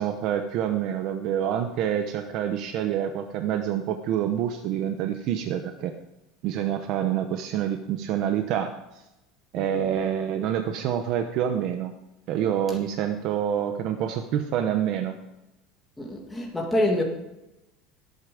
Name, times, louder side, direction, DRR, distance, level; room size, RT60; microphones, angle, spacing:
voice 1, 0.0-5.9 6.4-8.8 9.5-11.9 12.3-15.1, right 9 dB, 50° right, 6 dB, 0.9 m, -27 dB
voice 2, 9.5-9.9 16.0-17.0, left 1 dB, 5° left, -1 dB, 1.9 m, -26 dB
19.5 x 8.6 x 5.1 m, 0.95 s
cardioid pair, 165°, 0 cm